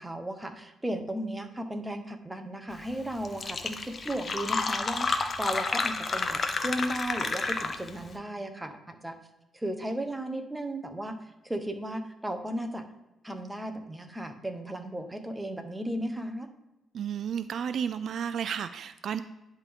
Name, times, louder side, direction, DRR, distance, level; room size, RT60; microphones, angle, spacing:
voice 1, 0.0-9.1 9.5-11.1 11.4-12.8 13.2-16.5, right 1 dB, 10° right, 5 dB, 1.0 m, -35 dB
Fill (with liquid), 2.9-3.0 3.2-8.0, left 4 dB, 40° left, 0.7 m, -30 dB
voice 2, 16.9-19.2, right 8 dB, 65° right, 12 dB, 0.3 m, -32 dB
10.5 x 3.6 x 3.7 m, 0.98 s
cardioid pair, 90°, 0 cm